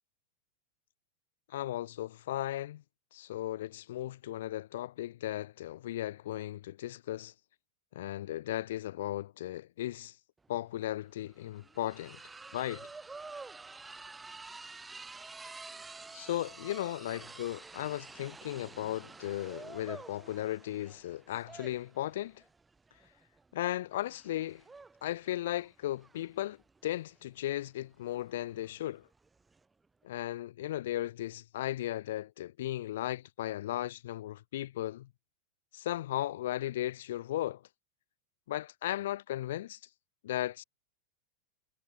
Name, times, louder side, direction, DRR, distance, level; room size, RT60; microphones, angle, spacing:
voice 1, 1.5-2.8 3.1-7.3 7.9-10.1 10.5-12.2 12.5-12.9 16.1-22.4 23.5-24.6 25.0-26.6 26.8-29.1 30.0-35.1 35.7-37.6 38.5-39.8 40.2-40.6, left 13 dB, 55° left, 0.4 m, -36 dB
sound 1, 10.4-10.5 10.8-29.6, right 3 dB, 10° right, 1.5 m, -50 dB
figure-of-eight pair, 90°, 0 cm